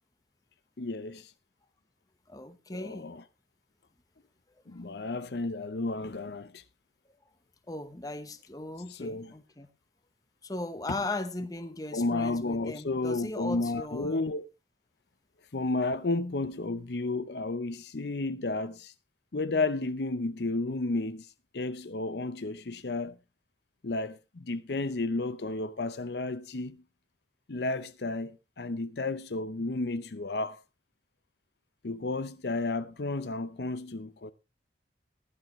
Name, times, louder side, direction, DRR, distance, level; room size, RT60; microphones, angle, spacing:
voice 1, 0.8-1.3 2.7-3.2 4.7-6.6 8.9-9.3 11.9-14.5 15.5-18.9 19.3-21.3 21.5-23.2 23.8-26.8 27.5-30.6 31.8-34.3, left 2 dB, 65° left, 0.7 m, -32 dB
voice 2, 2.3-3.1 7.7-9.7 10.4-14.2, left 2 dB, 20° left, 1.0 m, -38 dB
15.0 x 11.5 x 3.1 m
head